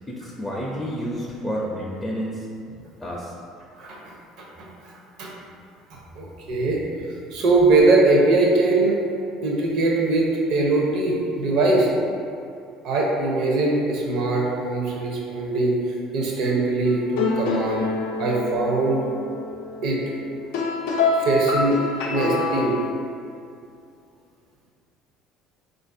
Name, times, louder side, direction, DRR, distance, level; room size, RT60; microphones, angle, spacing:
voice 1, 0.1-2.5 3.0-3.4, equal, 5° left, -5 dB, 0.4 m, -30 dB
voice 2, 6.2-6.8 7.3-9.0 9.4-11.9 12.8-15.8 16.1-17.8 18.2-19.0 19.8-20.0 21.2-21.8 22.1-22.8, right 2 dB, 65° right, -2 dB, 0.6 m, -21 dB
sound 1, 16.9-22.9, left 3 dB, 80° left, 0.4 m, -26 dB
3.8 x 2.5 x 2.6 m, 2.5 s
supercardioid pair, 85°, 0 cm